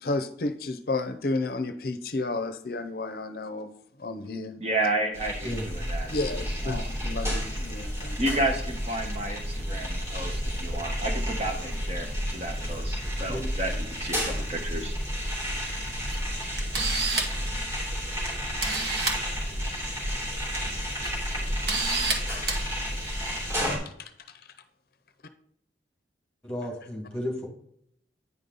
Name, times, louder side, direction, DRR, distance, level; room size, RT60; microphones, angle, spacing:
voice 1, 0.0-3.7 4.0-4.5 6.1-8.2 22.8-22.9 24.0-24.4, left 2 dB, 55° left, 10 dB, 0.6 m, -32 dB
voice 2, 4.6-6.1 6.6-6.9 8.2-14.9, right 2 dB, 35° right, 3 dB, 1.0 m, -31 dB
sound 1, 5.1-23.8, equal, 15° right, 3.3 m, -31 dB
Camera, 16.1-16.2 16.6-17.4 18.2-18.3 18.6-19.2 20.3-20.6 21.0-21.1 21.7-22.1 22.5-22.6, right 3 dB, 65° right, 1.6 m, -28 dB
voice 3, 26.4-27.5, left 1 dB, 5° left, 0 dB, 2.2 m, -33 dB
9.7 x 5.3 x 3.9 m, 0.67 s
head